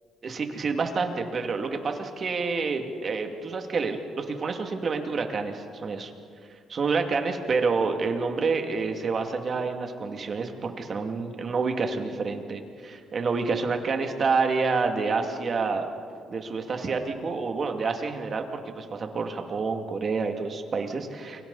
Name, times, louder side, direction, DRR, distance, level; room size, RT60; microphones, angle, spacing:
voice 1, 0.2-6.1 6.7-15.9 16.3-21.4, right 4 dB, 45° right, 4 dB, 2.4 m, -28 dB
29.5 x 23.5 x 4.1 m, 2.3 s
cardioid pair, 90°, 0 cm